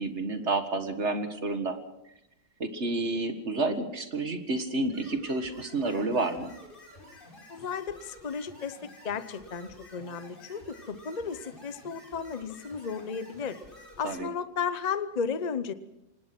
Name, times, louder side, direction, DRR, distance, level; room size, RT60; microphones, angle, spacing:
voice 1, 0.0-1.8 2.6-6.5 14.0-14.3, right 2 dB, 40° right, 8 dB, 1.9 m, -30 dB
sound 1, 4.8-14.1, left 1 dB, 25° left, 6.4 m, -51 dB
voice 2, 7.5-13.6 14.0-15.7, left 6 dB, 50° left, 13 dB, 0.5 m, -34 dB
26.0 x 19.5 x 6.1 m, 0.87 s
omnidirectional pair, 2.0 m